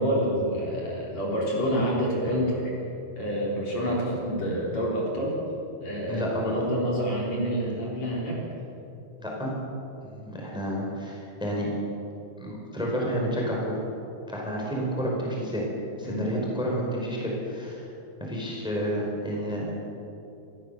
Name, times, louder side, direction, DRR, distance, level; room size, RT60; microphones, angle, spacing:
voice 1, 0.0-2.7 3.2-5.4 5.8-8.4 16.0-16.3, equal, 45° left, -4 dB, 4.6 m, -28 dB
voice 2, 6.1-6.7 9.2-9.5 10.0-11.7 12.4-13.8 14.3-15.6 16.0-17.8 18.3-19.7, equal, ahead, -2 dB, 4.0 m, -30 dB
27.0 x 14.5 x 6.8 m, 2.8 s
omnidirectional pair, 4.4 m